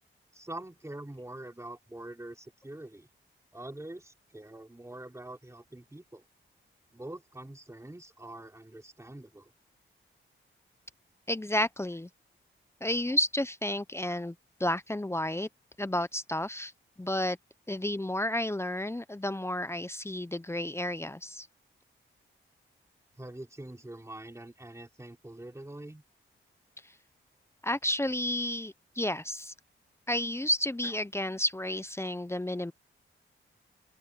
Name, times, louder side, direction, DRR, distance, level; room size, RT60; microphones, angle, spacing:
voice 1, 0.3-3.1 3.5-6.2 6.9-9.5 23.2-26.0, right 1 dB, 15° right, 3.4 m, -44 dB
voice 2, 11.3-12.1 12.8-14.3 14.6-15.5 15.8-16.7 17.0-17.4 17.7-21.5 27.6-29.5 30.1-32.7, left 1 dB, 10° left, 0.8 m, -31 dB
open air
cardioid pair, 65°, 21 cm